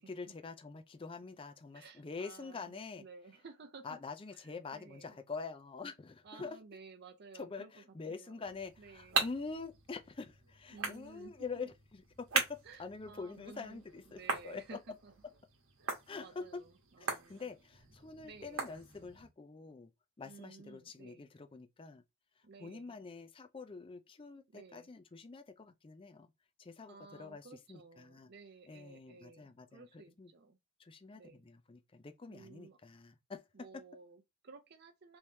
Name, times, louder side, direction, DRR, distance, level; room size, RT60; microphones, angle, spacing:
voice 1, 0.0-3.0 3.8-6.6 7.3-14.6 16.1-16.6 17.0-19.9 20.2-22.0 22.6-26.3 26.6-28.3 28.7-30.3 30.8-33.8, left 4 dB, 25° left, 0.4 m, -46 dB
voice 2, 1.7-2.7 3.0-4.0 4.3-4.4 4.7-5.2 6.2-7.7 8.1-8.4 8.8-9.2 10.7-11.5 12.6-13.8 14.1-15.1 15.8-17.5 18.2-18.7 20.2-21.2 22.4-22.9 24.5-24.9 26.9-30.6 31.2-31.4 32.3-32.8 33.5-35.2, right 4 dB, 50° right, 0.5 m, -55 dB
sound 1, 8.4-19.3, right 5 dB, 65° right, 1.1 m, -41 dB
3.5 x 3.1 x 2.7 m
head